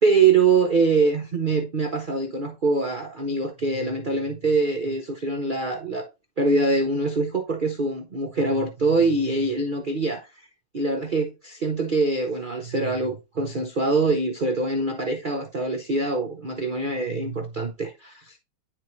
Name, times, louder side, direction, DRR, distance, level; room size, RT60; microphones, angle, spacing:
voice 1, 0.0-6.1 6.4-10.3 10.7-18.3, right 3 dB, 65° right, 0.5 m, -24 dB
10.0 x 4.0 x 3.1 m
omnidirectional pair, 2.2 m